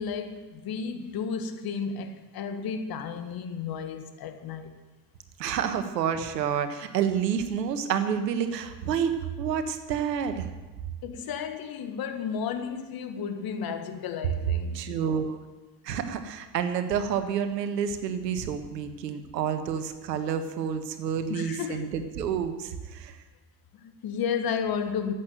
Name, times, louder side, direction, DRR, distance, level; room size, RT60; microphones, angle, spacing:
voice 1, 0.0-4.7 11.0-14.8 21.3-21.9 23.7-25.1, left 6 dB, 45° left, 1.8 m, -33 dB
voice 2, 5.4-10.5 14.7-15.4 15.8-23.2, right 7 dB, 80° right, 1.5 m, -29 dB
14.5 x 8.5 x 9.1 m
hypercardioid pair, 70°, 49 cm